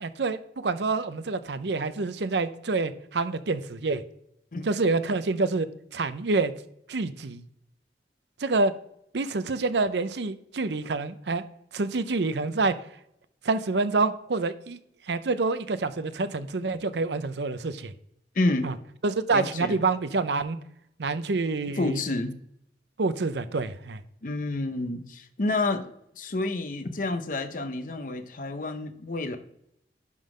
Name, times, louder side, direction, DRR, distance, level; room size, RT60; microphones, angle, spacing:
voice 1, 0.0-4.0 4.6-5.7 5.9-6.5 6.9-7.4 8.4-8.7 9.1-11.4 11.7-12.7 13.4-14.8 15.1-17.9 18.6-18.7 19.0-20.6 21.0-22.0 23.0-24.0, right 3 dB, 70° right, 0.6 m, -27 dB
voice 2, 18.3-18.7 19.3-19.8 21.8-22.4 24.2-29.4, left 2 dB, 45° left, 0.7 m, -29 dB
11.0 x 3.9 x 5.0 m
head